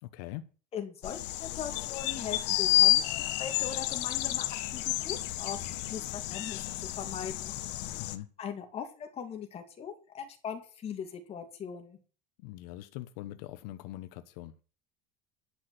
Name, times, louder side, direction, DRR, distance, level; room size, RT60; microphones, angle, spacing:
voice 1, 0.0-0.4 8.0-8.3 12.4-14.5, left 15 dB, 85° left, 1.0 m, -42 dB
voice 2, 0.7-4.5 4.7-5.6 5.9-6.6 6.9-7.5 8.4-12.0, left 7 dB, 30° left, 2.5 m, -40 dB
sound 1, 1.0-8.2, left 15 dB, 60° left, 1.3 m, -30 dB
11.0 x 6.2 x 7.8 m
cardioid pair, 155°, 20 cm